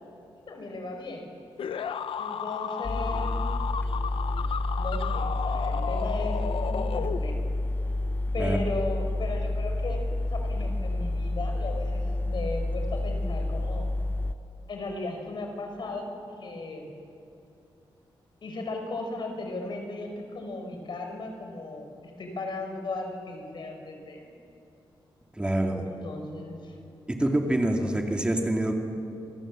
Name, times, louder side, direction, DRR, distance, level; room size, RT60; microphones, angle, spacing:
voice 1, 0.5-1.3 2.2-3.3 4.8-6.4 6.7-7.5 8.3-10.0 10.3-13.9 14.7-16.9 18.4-24.3 25.8-26.8, left 2 dB, 55° left, 4 dB, 5.2 m, -36 dB
sound 1, 1.6-7.6, left 8 dB, 75° left, 0.9 m, -34 dB
sound 2, 2.8-14.3, left 2 dB, 20° left, 0.9 m, -29 dB
voice 2, 25.4-25.9 27.2-28.7, right 1 dB, 10° right, 2 dB, 2.3 m, -26 dB
28.0 x 25.5 x 7.5 m, 2.6 s
wide cardioid pair, 130°, 9 cm